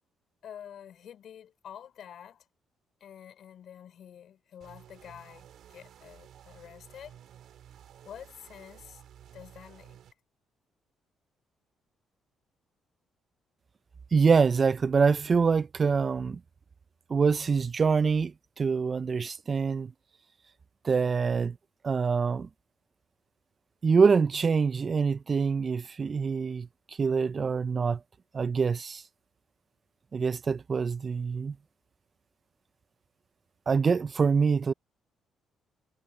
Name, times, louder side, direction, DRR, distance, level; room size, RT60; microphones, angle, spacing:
voice 1, 0.4-2.5 3.0-7.2 8.0-9.0 9.3-10.0, left 9 dB, 65° left, 4.4 m, -48 dB
sound 1, 4.6-10.1, right 10 dB, 70° right, 4.2 m, -53 dB
voice 2, 14.1-16.4 17.1-19.9 20.8-21.6 21.8-22.5 23.8-26.7 27.0-28.0 28.3-29.0 30.1-31.6 33.7-34.7, right 5 dB, 40° right, 0.4 m, -25 dB
cardioid pair, 90°, 0 cm